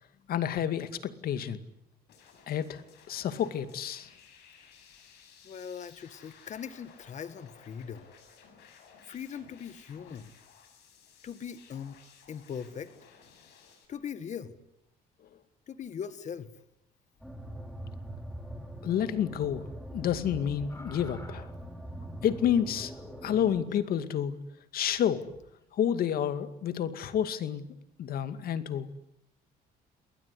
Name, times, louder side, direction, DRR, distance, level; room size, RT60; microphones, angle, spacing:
voice 1, 0.3-1.6 2.5-2.8 3.1-4.1 18.8-21.5 22.2-22.9 23.2-24.4 24.7-25.3 25.7-27.6 28.0-28.9, left 9 dB, 60° left, 11 dB, 2.3 m, -29 dB
sound 1, 2.1-13.9, left 6 dB, 80° left, 7.5 m, -57 dB
voice 2, 5.4-8.1 9.1-10.3 11.2-12.0 12.3-12.9 13.9-14.6 15.7-16.5, left 7 dB, 45° left, 12 dB, 1.9 m, -40 dB
sound 2, 17.2-23.6, right 1 dB, ahead, 4.5 m, -43 dB
sound 3, 20.7-21.6 22.1-24.3 25.5-25.7, left 2 dB, 15° left, 5.1 m, -51 dB
29.0 x 20.5 x 9.8 m, 0.82 s
cardioid pair, 110°, 17 cm